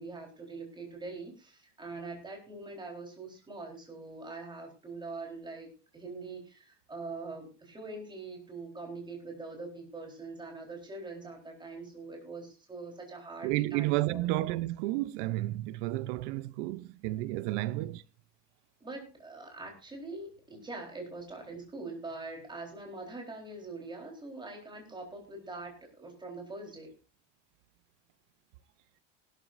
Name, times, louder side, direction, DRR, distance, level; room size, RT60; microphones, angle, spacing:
voice 1, 0.0-14.4 18.8-26.9, right 3 dB, 10° right, 4.0 m, -43 dB
voice 2, 13.4-18.0, right 18 dB, 70° right, 0.7 m, -31 dB
19.0 x 12.5 x 2.6 m
cardioid pair, 160°, 37 cm